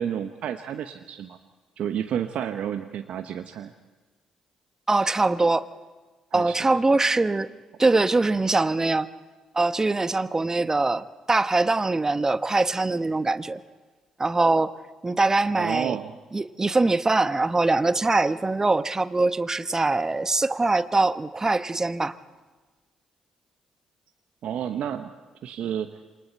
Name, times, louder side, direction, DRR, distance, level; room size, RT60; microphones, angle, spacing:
voice 1, 0.0-1.4 1.8-3.7 5.0-5.1 6.3-6.6 15.6-16.1 24.4-25.1 25.4-25.9, right 9 dB, 60° right, 8 dB, 1.0 m, -30 dB
voice 2, 4.9-5.7 6.3-7.5 7.8-9.1 9.5-13.6 14.2-14.7 15.0-16.0 16.3-22.2, right 3 dB, 25° right, 13 dB, 1.1 m, -23 dB
27.0 x 24.0 x 4.5 m, 1.3 s
hypercardioid pair, 45°, 2 cm